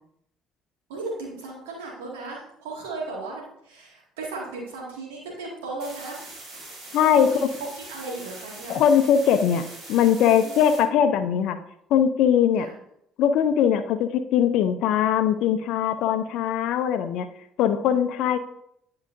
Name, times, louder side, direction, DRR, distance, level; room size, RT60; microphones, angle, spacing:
voice 1, 0.9-6.3 7.1-7.5 7.9-8.8 10.4-10.5 12.6-12.7, right 3 dB, 80° right, -3 dB, 2.0 m, -36 dB
sound 1, 5.8-10.8, right 2 dB, 55° right, 2.9 m, -42 dB
voice 2, 6.9-7.3 8.7-11.6 11.9-12.7 13.2-17.3 17.6-18.4, left 9 dB, 65° left, 10 dB, 0.6 m, -21 dB
10.5 x 4.8 x 2.6 m, 0.73 s
hypercardioid pair, 55°, 0 cm